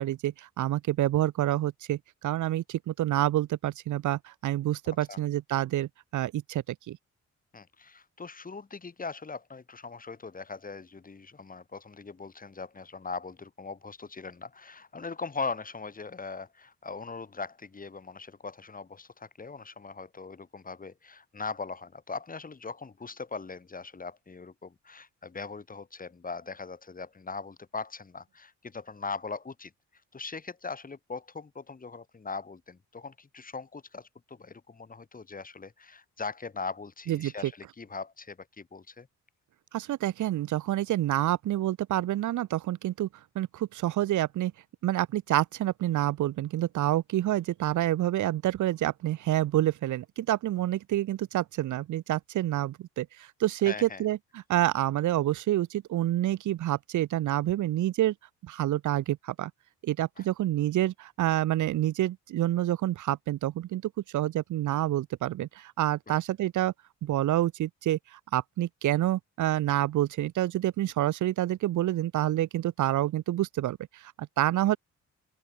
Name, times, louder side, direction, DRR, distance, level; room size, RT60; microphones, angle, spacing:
voice 1, 0.0-7.0 37.1-37.5 39.7-43.1 43.4-44.5 44.8-58.1 58.4-59.5 59.8-63.8 64.1-66.7 67.0-74.8, right 13 dB, 75° right, 1.7 m, -28 dB
voice 2, 7.5-29.7 30.1-39.1 53.7-54.0 60.2-60.3 66.1-66.2, left 4 dB, 30° left, 3.1 m, -40 dB
open air
cardioid pair, 90°, 30 cm